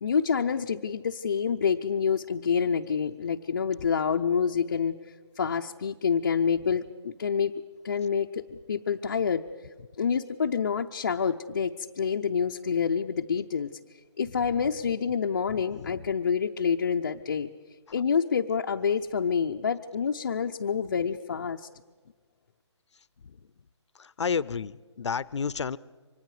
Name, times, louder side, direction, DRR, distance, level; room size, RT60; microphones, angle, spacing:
voice 1, 0.0-5.0 5.4-7.5 7.8-9.4 10.0-13.7 14.2-17.5 17.9-21.7, left 6 dB, 35° left, 2 dB, 0.6 m, -27 dB
voice 2, 14.2-14.7 15.5-16.1 21.0-21.5 22.9-23.5 23.9-25.8, left 6 dB, 70° left, 20 dB, 0.7 m, -34 dB
29.0 x 25.0 x 4.9 m, 1.4 s
hypercardioid pair, 170°, 15 cm